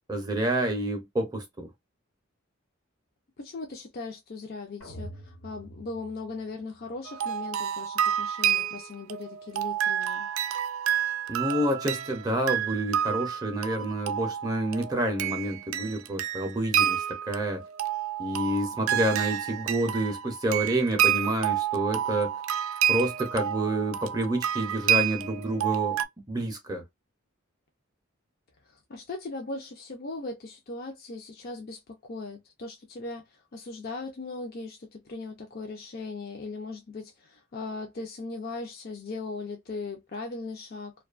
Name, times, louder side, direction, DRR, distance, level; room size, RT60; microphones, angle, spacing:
voice 1, 0.1-1.7 11.3-17.6 18.2-22.4 22.9-26.0 26.3-26.8, right 1 dB, 20° right, 0.5 m, -28 dB
voice 2, 3.4-10.3 28.7-40.9, left 3 dB, 45° left, 0.5 m, -38 dB
sound 1, 4.8-6.9, right 1 dB, 75° left, 1.2 m, -45 dB
sound 2, 7.1-26.1, right 10 dB, 80° right, 0.4 m, -29 dB
2.6 x 2.2 x 2.3 m
head